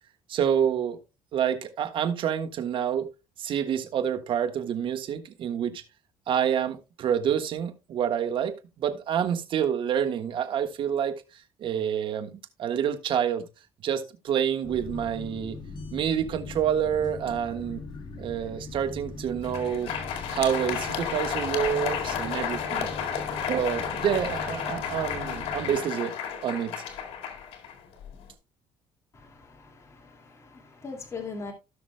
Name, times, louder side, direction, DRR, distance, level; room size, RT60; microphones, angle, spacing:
voice 1, 0.3-1.0 1.3-3.1 3.4-5.8 6.3-11.2 11.6-13.5 13.8-15.6 15.9-17.8 18.2-19.9 20.3-22.9 23.5-26.1 26.4-26.7, right 8 dB, 60° right, 1.5 m, -28 dB
sound 1, 14.6-25.8, left 3 dB, 50° left, 2.6 m, -41 dB
Crowd, 19.3-28.3, left 7 dB, 80° left, 2.0 m, -32 dB
voice 2, 29.1-31.5, left 4 dB, 30° left, 2.3 m, -41 dB
17.0 x 6.1 x 2.2 m
cardioid pair, 105°, 10 cm